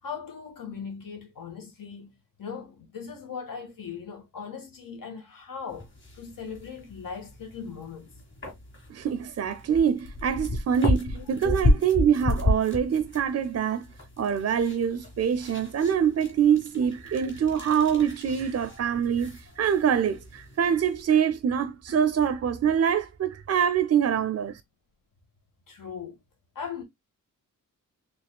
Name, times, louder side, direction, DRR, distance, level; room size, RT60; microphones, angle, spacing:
voice 1, 0.0-2.1 2.4-8.1 11.1-11.2 18.7-18.9 19.6-19.7 25.7-26.2 26.5-26.8, left 6 dB, 80° left, 1.6 m, -39 dB
sound 1, 5.7-21.0, left 1 dB, 35° left, 1.9 m, -32 dB
voice 2, 8.9-13.9 14.2-24.6, right 8 dB, 50° right, 0.4 m, -25 dB
4.2 x 3.4 x 2.2 m
wide cardioid pair, 175°, 33 cm